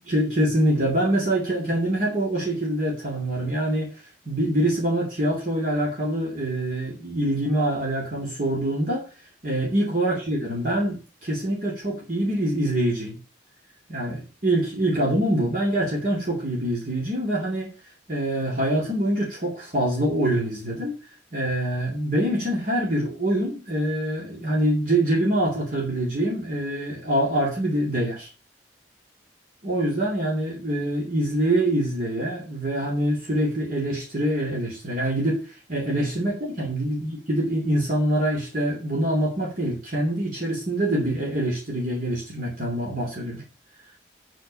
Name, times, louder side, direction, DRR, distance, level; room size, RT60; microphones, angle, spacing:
voice 1, 0.0-9.1 9.4-13.2 13.9-17.7 18.1-21.0 21.3-28.3 29.6-43.4, right 1 dB, 50° right, 2.9 m, -25 dB
8.3 x 7.9 x 5.7 m
head